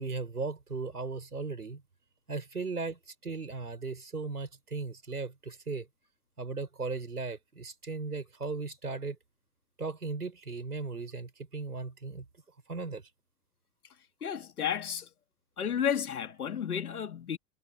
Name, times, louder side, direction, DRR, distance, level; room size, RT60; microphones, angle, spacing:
voice 1, 0.0-1.8 2.3-5.9 6.4-9.2 9.8-12.3 12.7-13.0, right 4 dB, 85° right, 6.0 m, -37 dB
voice 2, 14.2-15.1 15.6-17.4, left 8 dB, 75° left, 3.5 m, -32 dB
figure-of-eight pair, 85°, 44 cm